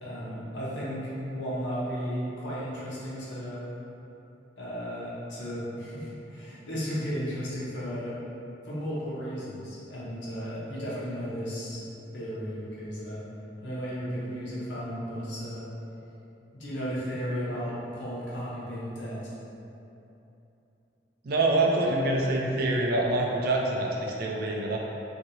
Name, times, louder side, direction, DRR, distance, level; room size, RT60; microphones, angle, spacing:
voice 1, 0.0-3.6 4.6-8.2 8.6-11.8 12.1-13.2 13.6-15.7 16.5-19.3, equal, 85° left, -8 dB, 0.8 m, -34 dB
voice 2, 21.2-24.8, right 2 dB, 60° right, -1 dB, 0.4 m, -25 dB
2.7 x 2.7 x 2.7 m, 2.9 s
head